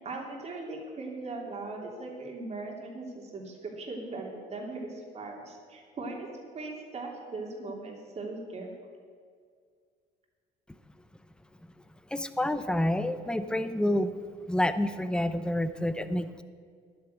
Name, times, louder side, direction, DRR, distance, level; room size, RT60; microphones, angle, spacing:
voice 1, 0.0-6.3 6.5-8.7, right 3 dB, 40° right, -1 dB, 3.1 m, -39 dB
voice 2, 12.1-14.1 14.5-16.4, left 1 dB, 5° left, 11 dB, 0.7 m, -28 dB
11.0 x 9.8 x 8.0 m, 2.1 s
cardioid pair, 110°, 17 cm